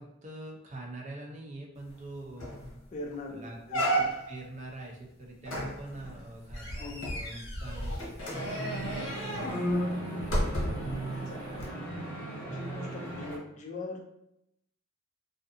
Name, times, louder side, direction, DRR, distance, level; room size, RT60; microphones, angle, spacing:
voice 1, 0.0-2.8 3.3-10.0, right 2 dB, 35° right, 0 dB, 0.4 m, -45 dB
sound 1, 2.0-2.1 2.4-2.7 3.1-3.2 3.7-4.4 5.5-10.9 11.6-11.7, equal, 65° left, 0.8 m, -32 dB
voice 2, 2.9-4.1 6.8-7.1 10.9-11.8 12.3-14.0, left 2 dB, 35° left, 1 dB, 0.3 m, -42 dB
sound 2, 8.3-13.4, right 2 dB, 10° left, 0.9 m, -38 dB
2.4 x 2.4 x 2.5 m, 0.80 s
head